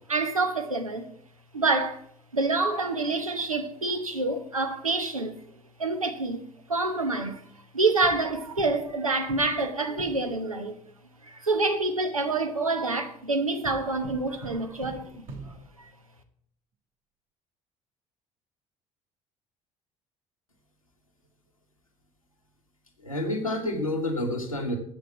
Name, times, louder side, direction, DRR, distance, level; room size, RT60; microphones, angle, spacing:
voice 1, 0.1-1.1 1.5-2.0 2.3-5.4 5.8-6.4 6.7-7.4 7.7-10.8 11.2-15.9, right 3 dB, 90° right, 0.9 m, -27 dB
sound 1, 8.0-9.0 9.3-10.4 13.6-15.9, right 3 dB, 55° right, 2.8 m, -43 dB
voice 2, 23.0-24.8, left 1 dB, 90° left, 1.3 m, -29 dB
7.9 x 6.4 x 8.2 m
figure-of-eight pair, 55°, 17 cm